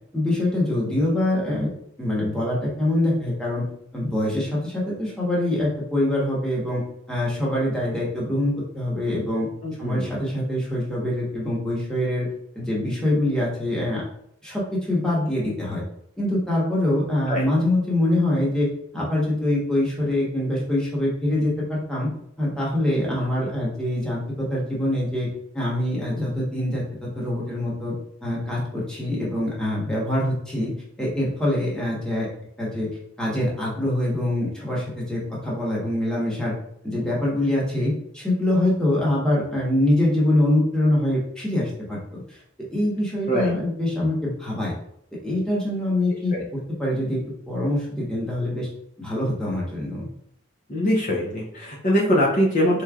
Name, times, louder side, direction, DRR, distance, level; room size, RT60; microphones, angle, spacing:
voice 1, 0.1-1.7 2.0-3.6 3.9-6.8 7.1-9.5 9.8-12.3 12.5-14.0 14.4-15.8 16.2-18.7 18.9-22.1 22.4-25.3 25.5-27.9 28.2-30.7 31.0-32.3 32.6-32.9 33.2-36.5 36.8-42.4 42.7-44.7 45.2-47.2 47.5-48.7 49.0-50.1, left 1 dB, 5° left, -6 dB, 1.1 m, -24 dB
voice 2, 9.6-10.1 17.3-17.4 23.4-23.5 43.3-43.5 46.3-46.4 50.7-52.8, equal, 40° left, -3 dB, 0.7 m, -22 dB
4.2 x 3.2 x 2.4 m, 0.71 s
head